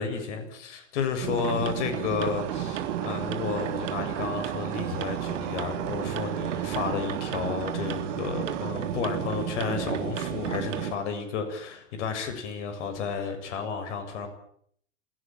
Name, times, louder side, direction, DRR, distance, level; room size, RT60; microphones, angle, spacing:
voice 1, 0.0-14.3, left 6 dB, 60° left, 7 dB, 7.4 m, -32 dB
sound 1, 1.2-11.0, right 10 dB, 65° right, 3.6 m, -32 dB
sound 2, 2.2-8.7, right 9 dB, 50° right, 4.2 m, -39 dB
27.5 x 17.5 x 9.2 m, 0.66 s
hypercardioid pair, 100°, 40 cm